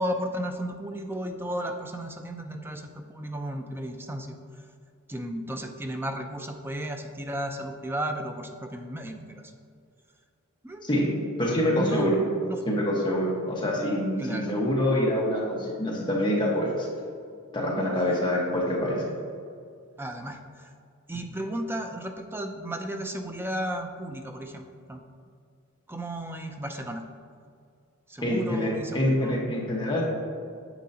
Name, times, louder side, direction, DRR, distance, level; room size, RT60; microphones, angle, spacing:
voice 1, 0.0-4.4 5.1-9.4 10.6-10.8 11.7-12.2 12.5-12.6 14.2-14.5 20.0-20.7 21.1-25.0 25.9-27.0 28.1-29.5, right 1 dB, 10° right, 4 dB, 0.5 m, -34 dB
voice 2, 11.4-12.2 12.7-16.9 17.5-19.0 28.2-30.0, left 1 dB, 20° left, -4 dB, 1.3 m, -26 dB
10.0 x 7.3 x 2.8 m, 2.3 s
head